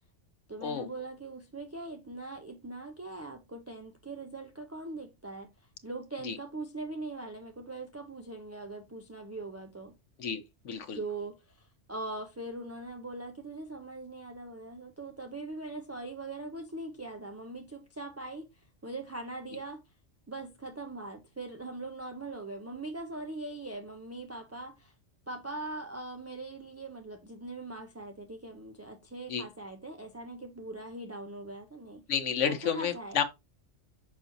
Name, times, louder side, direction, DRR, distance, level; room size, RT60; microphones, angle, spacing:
voice 1, 0.5-5.5 5.8-9.9 10.9-18.5 18.8-19.8 20.3-24.9 25.3-32.0 32.5-33.2, right 2 dB, 20° right, 0.5 m, -41 dB
voice 2, 10.2-11.0 29.3-29.4 32.1-33.2, left 7 dB, 85° left, 1.2 m, -31 dB
6.0 x 5.8 x 2.7 m
omnidirectional pair, 1.2 m